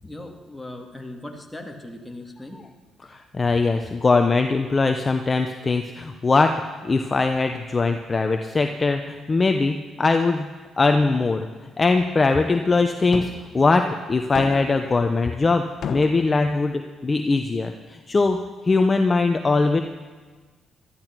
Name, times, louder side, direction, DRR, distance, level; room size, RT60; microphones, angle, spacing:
voice 1, 0.0-2.6, left 1 dB, 5° left, 1 dB, 2.5 m, -38 dB
voice 2, 3.0-6.5 6.8-10.5 10.8-11.5 11.8-15.6 15.9-19.8, left 3 dB, 30° left, 6 dB, 0.8 m, -21 dB
sound 1, 13.1-13.4 14.3-14.8 15.8-16.3, left 7 dB, 60° left, 1.3 m, -32 dB
18.0 x 13.0 x 6.1 m, 1.4 s
cardioid pair, 90°, 0 cm